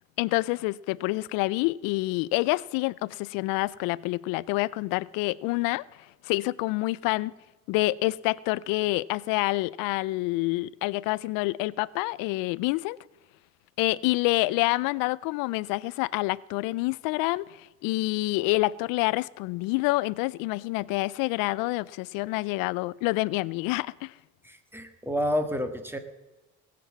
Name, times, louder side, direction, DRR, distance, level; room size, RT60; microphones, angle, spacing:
voice 1, 0.2-5.8 6.2-7.3 7.7-13.0 13.8-24.1, left 21 dB, 85° left, 0.5 m, -27 dB
voice 2, 24.4-26.0, equal, 5° right, 1.7 m, -29 dB
19.0 x 7.7 x 7.2 m
cardioid pair, 110°, 32 cm